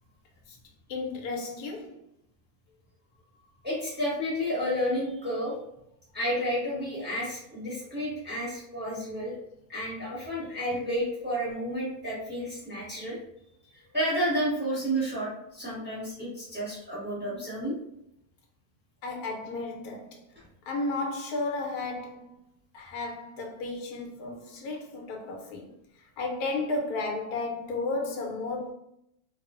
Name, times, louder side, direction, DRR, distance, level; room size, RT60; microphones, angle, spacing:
voice 1, 0.9-2.0 10.7-10.8 19.0-20.2 20.6-22.4 22.7-25.7 26.2-28.7, left 3 dB, 90° left, 1.1 m, -33 dB
voice 2, 3.6-5.5 6.1-9.4 9.7-13.2 13.7-17.7, equal, 10° right, 0.8 m, -31 dB
2.4 x 2.3 x 2.3 m
omnidirectional pair, 1.6 m